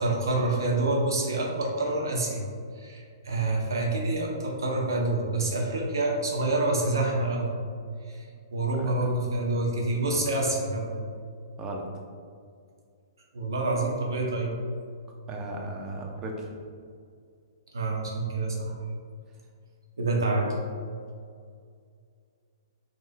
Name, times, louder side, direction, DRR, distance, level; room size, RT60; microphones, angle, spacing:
voice 1, 0.0-2.4 2.8-7.6 8.0-8.2 8.5-10.9 13.3-14.5 17.7-18.7 20.0-20.5, right 2 dB, 75° right, -1 dB, 0.8 m, -27 dB
voice 2, 15.3-16.5, right 1 dB, 20° right, 0 dB, 0.6 m, -36 dB
5.3 x 3.0 x 2.3 m, 2.2 s
figure-of-eight pair, 120°, 2 cm